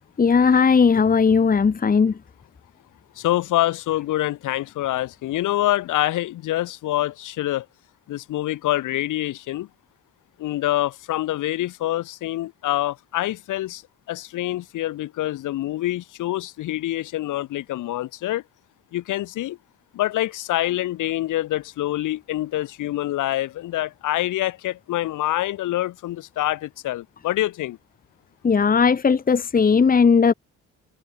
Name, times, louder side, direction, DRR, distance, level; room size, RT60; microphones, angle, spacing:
voice 1, 0.2-2.1 28.4-30.3, left 5 dB, 30° left, 1.3 m, -17 dB
voice 2, 3.1-7.6 8.1-9.7 10.4-13.8 14.1-18.4 18.9-19.6 19.9-27.8, left 15 dB, 85° left, 3.4 m, -26 dB
cardioid pair, 90°, 30 cm